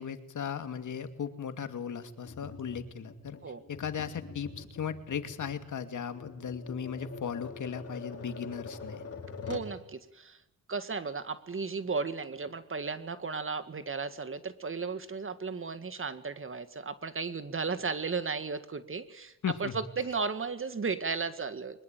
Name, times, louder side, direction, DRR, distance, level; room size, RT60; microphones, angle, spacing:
voice 1, 0.0-3.4 3.7-9.0 19.4-19.7, left 7 dB, 60° left, 9 dB, 2.6 m, -37 dB
Tap, 2.3-9.8, left 5 dB, 45° left, 4.8 m, -45 dB
voice 2, 9.4-10.4 10.7-19.3 19.6-21.8, right 4 dB, 35° right, 12 dB, 2.0 m, -35 dB
23.5 x 21.0 x 9.2 m, 0.86 s
cardioid pair, 85°, 34 cm